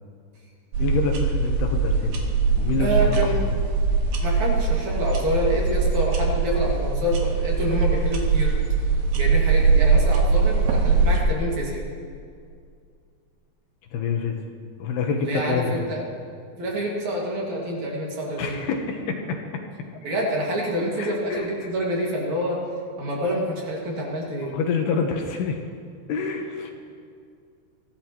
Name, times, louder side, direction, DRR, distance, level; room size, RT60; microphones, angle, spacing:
sound 1, 0.7-11.2, right 4 dB, 75° right, 3.3 m, -21 dB
voice 1, 0.8-2.3 2.6-3.2 3.4-3.5 13.9-14.4 14.8-15.9 18.4-19.4 21.0-21.5 24.5-25.6 26.1-26.7, left 5 dB, 75° left, 3 dB, 2.9 m, -27 dB
voice 2, 2.8-3.4 4.2-8.5 9.1-11.9 15.2-16.0 16.5-18.6 20.0-22.6 23.0-24.5, equal, 50° right, -3 dB, 3.0 m, -27 dB
24.0 x 15.0 x 3.0 m, 2.3 s
omnidirectional pair, 5.1 m